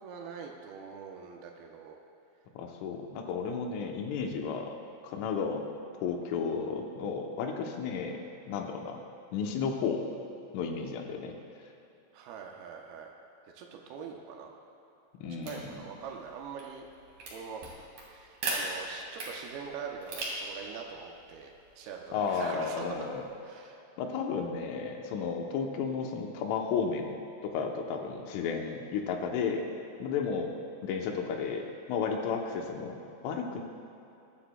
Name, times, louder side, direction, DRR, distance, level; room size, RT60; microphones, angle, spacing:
voice 1, 0.0-2.0 12.1-13.1 13.5-14.5 15.5-16.9 17.3-17.6 18.0-22.9 23.4-23.8, right 6 dB, 85° right, 1 dB, 2.2 m, -43 dB
voice 2, 2.6-4.8 5.0-5.7 6.0-8.2 8.5-9.0 9.3-10.1 10.5-11.4 15.2-15.8 22.1-23.2 24.0-27.1 27.4-29.7 30.0-33.0 33.2-33.6, left 5 dB, 90° left, 2 dB, 3.5 m, -33 dB
sound 1, 15.4-23.3, right 2 dB, 50° right, 3.2 m, -41 dB
21.0 x 9.9 x 2.3 m, 2.9 s
omnidirectional pair, 5.5 m